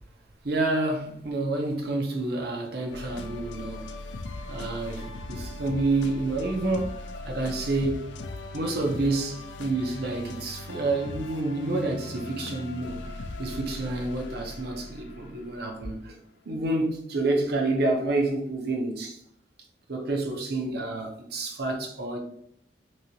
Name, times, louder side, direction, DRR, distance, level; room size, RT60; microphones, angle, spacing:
voice 1, 0.4-4.0 4.4-8.1 8.5-13.0 13.4-16.1 16.4-19.2 19.9-22.2, right 2 dB, 60° right, 0.7 m, -29 dB
sound 1, 2.9-16.1, left 2 dB, 85° left, 0.4 m, -39 dB
3.0 x 2.8 x 2.7 m
head